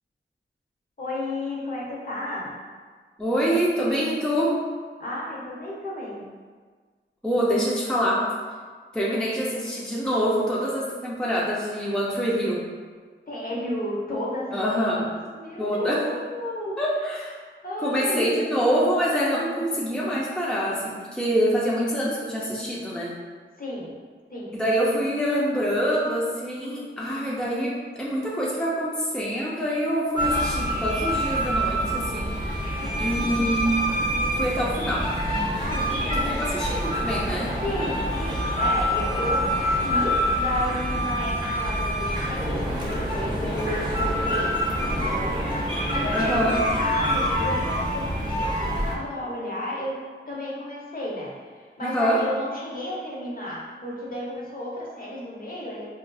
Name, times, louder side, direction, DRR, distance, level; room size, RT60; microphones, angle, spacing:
voice 1, 1.0-2.5 5.0-6.3 13.3-16.8 17.1-18.4 23.6-23.9 24.3-24.5 32.8-33.6 35.6-36.6 37.6-45.4 45.7-49.9 50.3-55.9, left 1 dB, 45° left, -5 dB, 0.9 m, -33 dB
voice 2, 3.2-4.6 7.2-8.3 8.9-12.6 14.5-15.1 15.6-16.1 16.8-17.3 17.8-23.1 24.5-32.3 33.0-33.9 34.3-35.1 36.2-37.5 46.1-46.6 51.8-52.2, equal, 5° left, -6 dB, 0.5 m, -25 dB
sound 1, 30.2-48.9, equal, 20° right, 0.9 m, -26 dB
4.1 x 2.5 x 2.3 m, 1.5 s
wide cardioid pair, 65°, 21 cm